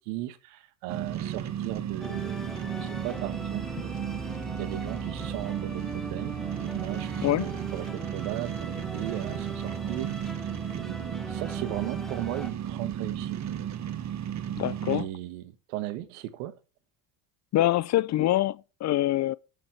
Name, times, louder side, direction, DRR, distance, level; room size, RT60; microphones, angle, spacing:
voice 1, 0.0-4.0 4.6-10.5 10.8-13.4 14.9-16.6, right 15 dB, 75° right, 1.4 m, -37 dB
sound 1, 0.9-15.0, right 10 dB, 40° right, 1.4 m, -34 dB
sound 2, 2.0-12.5, right 1 dB, ahead, 1.5 m, -40 dB
voice 2, 7.2-7.6 14.6-15.1 17.5-19.4, left 14 dB, 40° left, 0.5 m, -25 dB
13.5 x 7.1 x 4.5 m
hypercardioid pair, 75°, 42 cm